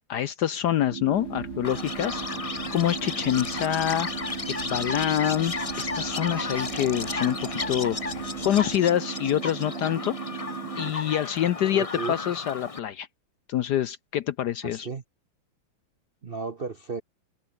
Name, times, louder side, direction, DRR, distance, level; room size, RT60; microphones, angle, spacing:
voice 1, 0.1-2.2 2.7-4.1 4.6-10.2 10.8-13.1 13.5-14.9, left 11 dB, 65° left, 1.1 m, -26 dB
sound 1, 0.9-10.9, right 9 dB, 80° right, 2.3 m, -37 dB
sound 2, 1.1-8.7, left 6 dB, 50° left, 2.2 m, -47 dB
Chirp tweet, 1.6-12.8, left 3 dB, 20° left, 1.0 m, -34 dB
voice 2, 11.6-12.2 14.6-15.0 16.2-17.0, right 4 dB, 45° right, 0.7 m, -34 dB
omnidirectional pair, 2.3 m